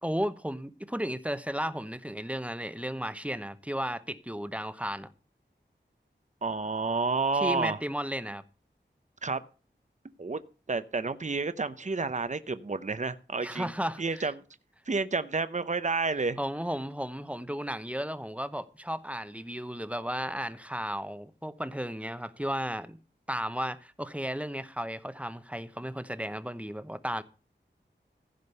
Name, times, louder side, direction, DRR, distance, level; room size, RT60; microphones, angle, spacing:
voice 1, 0.0-5.1 7.4-8.4 13.4-14.3 16.4-23.0 23.3-27.2, equal, 5° right, 0.9 m, -34 dB
voice 2, 6.4-7.8 9.2-9.4 10.2-10.4 10.7-13.7 14.0-14.3 14.9-16.4, right 4 dB, 40° right, 0.7 m, -30 dB
15.5 x 5.2 x 6.6 m
wide cardioid pair, 55°, 19 cm